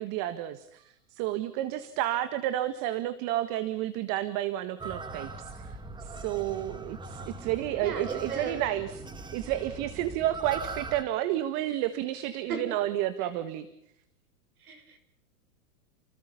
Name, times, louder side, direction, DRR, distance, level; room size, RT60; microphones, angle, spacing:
voice 1, 0.0-9.1 9.3-13.7, right 13 dB, 40° right, 12 dB, 1.7 m, -31 dB
sound 1, 4.8-11.0, right 3 dB, 10° right, 1.7 m, -41 dB
voice 2, 7.8-8.6 12.5-12.6 14.6-15.0, right 6 dB, 70° right, 8 dB, 6.5 m, -36 dB
30.0 x 21.0 x 5.6 m, 0.77 s
hypercardioid pair, 125°, 45 cm